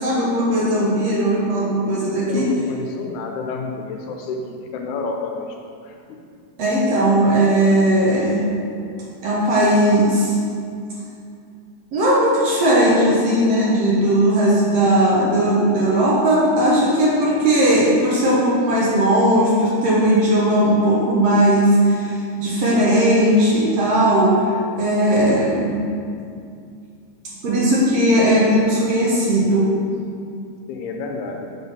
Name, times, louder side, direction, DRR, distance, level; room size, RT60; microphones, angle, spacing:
voice 1, 0.0-2.4 6.6-8.5 9.2-10.3 11.9-24.5 24.8-25.8 27.4-29.8, right 1 dB, 65° right, -6 dB, 1.9 m, -17 dB
voice 2, 2.2-4.4 4.7-5.6 5.8-6.2 30.7-31.5, left 4 dB, 80° left, 2 dB, 1.9 m, -29 dB
7.0 x 3.9 x 5.5 m, 2.4 s
omnidirectional pair, 3.6 m